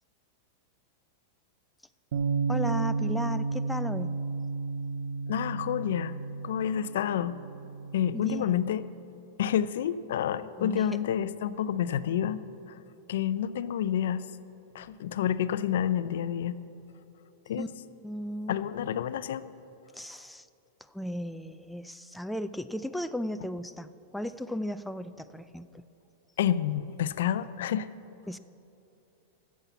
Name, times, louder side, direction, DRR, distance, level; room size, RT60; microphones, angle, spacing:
Bass guitar, 2.1-8.4, right 4 dB, 75° right, 0.6 m, -32 dB
voice 1, 2.5-4.1 8.1-8.6 10.6-11.0 17.6-17.7 18.0-18.6 19.9-20.5 20.9-25.8 28.3-28.4, equal, ahead, 11 dB, 0.3 m, -36 dB
voice 2, 5.3-6.2 6.4-7.3 7.9-8.8 9.4-12.4 13.1-14.2 14.7-16.6 17.5-17.6 18.5-19.4 26.4-27.9, left 10 dB, 75° left, 15 dB, 0.4 m, -29 dB
13.0 x 7.3 x 6.9 m, 2.9 s
supercardioid pair, 135°, 0 cm